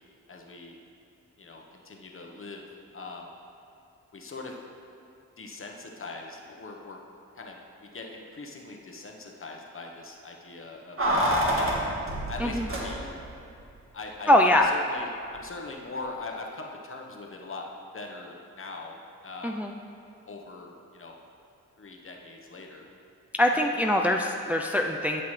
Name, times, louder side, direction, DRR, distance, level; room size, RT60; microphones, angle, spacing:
voice 1, 0.3-0.8 1.4-2.6 2.9-3.3 4.1-4.6 5.4-7.0 7.3-11.0 11.3-11.7 12.3-13.0 13.9-17.7 17.9-19.0 19.2-19.6 20.3-21.2 21.8-22.9 23.5-23.7, left 3 dB, 40° left, 1 dB, 1.2 m, -41 dB
Keys jangling, 11.0-13.3 13.6-13.7, equal, 45° right, 1.7 m, -27 dB
voice 2, 14.3-14.7 19.4-19.7 23.3-25.2, left 1 dB, 5° right, 2 dB, 0.4 m, -23 dB
13.0 x 5.8 x 3.3 m, 2.5 s
cardioid pair, 55°, 32 cm